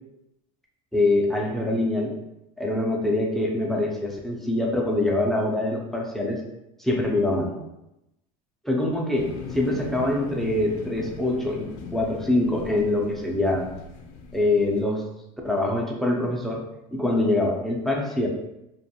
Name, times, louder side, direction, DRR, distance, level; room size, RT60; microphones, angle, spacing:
voice 1, 0.9-2.1 2.6-6.4 6.8-7.5 8.6-11.7 11.9-13.7 14.3-15.0 15.4-16.6 16.9-18.3, left 2 dB, ahead, -1 dB, 0.4 m, -24 dB
sound 1, 9.1-14.8, left 5 dB, 85° left, 0.5 m, -40 dB
2.5 x 2.3 x 2.8 m, 0.89 s
cardioid pair, 125°, 17 cm